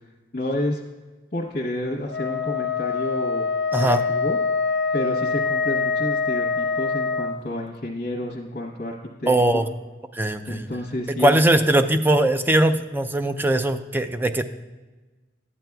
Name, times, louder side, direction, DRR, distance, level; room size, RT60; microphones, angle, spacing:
voice 1, 0.3-0.8 1.3-3.4 3.7-4.4 4.9-9.6 10.5-11.3, left 1 dB, 55° left, -2 dB, 0.9 m, -30 dB
Wind instrument woodwind instrument, 2.1-7.4, left 4 dB, 75° left, 0.5 m, -24 dB
voice 2, 3.7-4.0 9.3-9.6 10.1-10.6 11.2-14.4, right 1 dB, 10° right, 9 dB, 0.4 m, -20 dB
12.5 x 8.9 x 2.3 m, 1.2 s
head